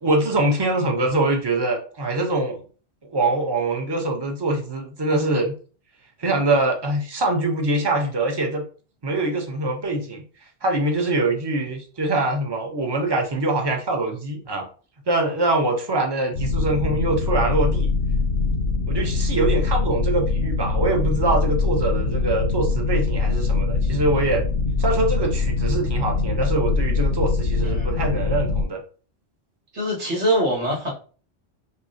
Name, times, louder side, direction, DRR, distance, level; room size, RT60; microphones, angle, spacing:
voice 1, 0.0-2.6 3.1-5.5 6.2-8.6 9.0-10.2 10.6-14.7 15.1-17.9 18.9-24.4 24.8-28.8, right 2 dB, 25° right, 2 dB, 0.6 m, -23 dB
sound 1, 16.3-28.6, left 4 dB, 65° left, 0.8 m, -23 dB
voice 2, 27.6-28.2 29.7-30.9, right 1 dB, 75° right, -5 dB, 2.0 m, -24 dB
5.4 x 2.1 x 2.7 m, 0.39 s
omnidirectional pair, 1.2 m